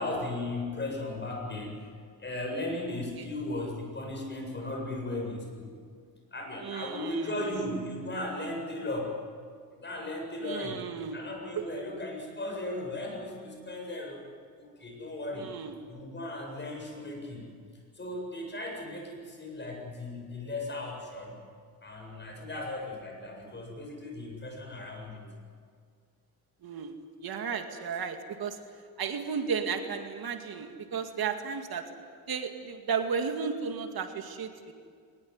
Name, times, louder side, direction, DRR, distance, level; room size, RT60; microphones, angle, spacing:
voice 1, 0.0-1.9 2.2-5.7 6.3-9.1 9.7-10.8 11.1-14.3 14.6-15.5 15.9-17.5 17.9-21.4 21.8-25.2, left 2 dB, 30° left, 1 dB, 7.7 m, -36 dB
voice 2, 6.6-7.6 10.4-11.2 11.6-11.7 15.4-15.7 26.6-27.0 27.2-28.6 29.0-31.9 32.3-34.7, right 6 dB, 70° right, 5 dB, 2.3 m, -34 dB
22.0 x 21.0 x 9.7 m, 2.1 s
cardioid pair, 130°, 38 cm